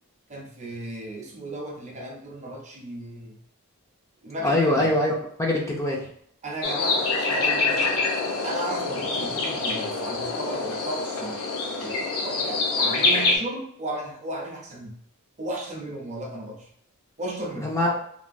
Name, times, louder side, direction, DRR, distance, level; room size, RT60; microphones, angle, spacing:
voice 1, 0.3-3.4 4.2-4.9 6.4-8.0 8.4-11.4 11.8-15.0 15.4-16.7 17.2-17.7, right 1 dB, 35° right, 0 dB, 0.6 m, -35 dB
voice 2, 4.4-6.0 17.6-17.9, left 1 dB, 15° left, -2 dB, 0.4 m, -23 dB
sound 1, 6.6-13.4, left 3 dB, 75° left, 0.6 m, -25 dB
3.2 x 2.2 x 2.5 m, 0.66 s
head